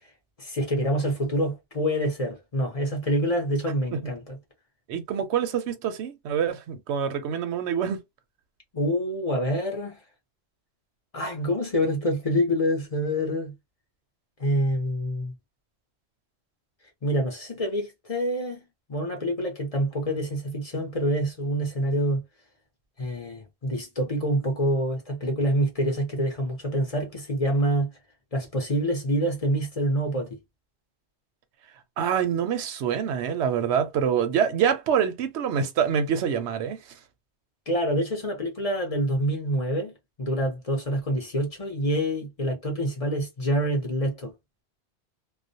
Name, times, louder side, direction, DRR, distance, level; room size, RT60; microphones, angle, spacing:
voice 1, 0.4-4.4 8.7-10.0 11.1-13.5 14.4-15.3 17.0-22.2 23.0-27.9 28.3-30.4 37.7-39.9 40.2-44.3, equal, 40° left, 0.7 m, -26 dB
voice 2, 4.9-8.0 32.0-36.8, right 8 dB, 90° right, 0.9 m, -25 dB
2.4 x 2.1 x 2.6 m
omnidirectional pair, 1.1 m